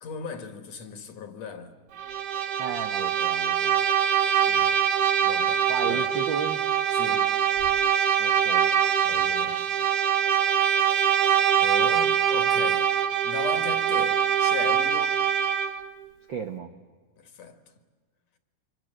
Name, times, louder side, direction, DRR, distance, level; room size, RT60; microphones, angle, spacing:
voice 1, 0.0-1.8 4.4-4.8 5.2-6.1 6.9-7.4 8.2-8.3 9.0-9.7 11.6-12.9 13.2-15.2 17.2-17.6, left 6 dB, 55° left, 2.7 m, -37 dB
Bowed string instrument, 2.0-15.9, right 9 dB, 60° right, 1.7 m, -23 dB
voice 2, 2.6-3.8 5.7-6.6 8.2-8.7 16.3-16.7, right 6 dB, 90° right, 1.0 m, -34 dB
27.5 x 25.0 x 7.8 m
omnidirectional pair, 3.8 m